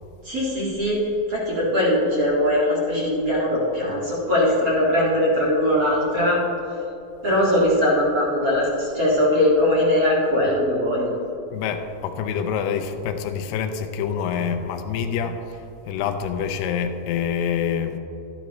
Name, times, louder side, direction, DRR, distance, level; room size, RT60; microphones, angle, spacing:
voice 1, 0.2-6.4 7.2-11.2, left 1 dB, 45° right, -5 dB, 1.1 m, -21 dB
voice 2, 11.5-18.0, left 7 dB, 85° left, 6 dB, 2.7 m, -26 dB
13.0 x 10.5 x 3.1 m, 2.9 s
omnidirectional pair, 4.6 m